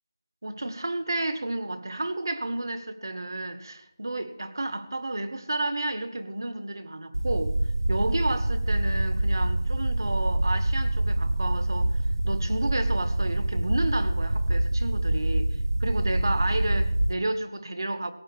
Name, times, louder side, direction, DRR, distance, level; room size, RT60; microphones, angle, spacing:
voice 1, 0.4-7.5 7.9-12.0 12.2-15.5 15.8-18.1, right 2 dB, 65° right, 10 dB, 1.5 m, -31 dB
sound 1, 7.1-17.1, right 1 dB, 85° right, 0.8 m, -25 dB
17.0 x 7.5 x 7.2 m, 0.78 s
figure-of-eight pair, 175°, 2 cm